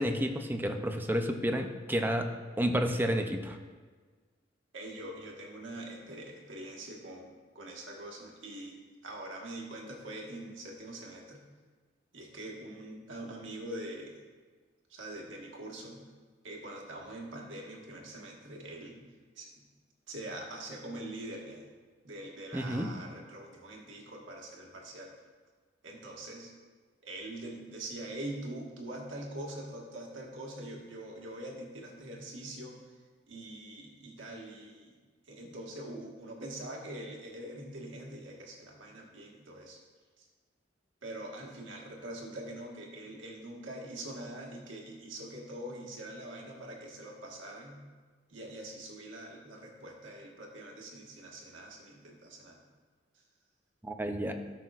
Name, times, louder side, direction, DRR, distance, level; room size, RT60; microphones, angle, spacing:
voice 1, 0.0-3.6 22.5-22.9 53.8-54.3, equal, 10° right, 5 dB, 0.5 m, -30 dB
voice 2, 4.7-8.8 9.0-11.4 12.1-14.2 14.9-16.0 16.4-19.0 19.4-19.5 20.1-21.6 22.0-25.1 25.8-26.5 27.0-32.8 33.3-34.9 35.3-39.8 41.0-47.8 48.3-52.6, right 1 dB, 85° right, -1 dB, 1.5 m, -43 dB
13.0 x 6.0 x 2.5 m, 1.4 s
head